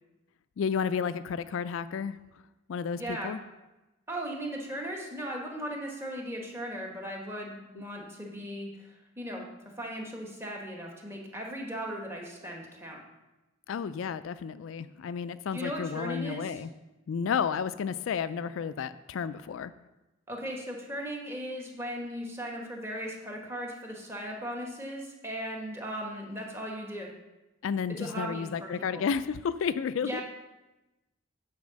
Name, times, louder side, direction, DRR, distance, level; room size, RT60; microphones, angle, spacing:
voice 1, 0.6-2.2 2.7-3.4 13.7-16.7 17.1-19.7 27.6-30.2, left 6 dB, 70° left, 13 dB, 0.3 m, -32 dB
voice 2, 3.0-3.3 4.1-9.4 9.8-13.0 15.5-16.6 20.3-27.1 28.0-29.0 30.0-30.2, equal, 10° right, 0 dB, 1.3 m, -37 dB
9.5 x 4.7 x 6.4 m, 1.0 s
head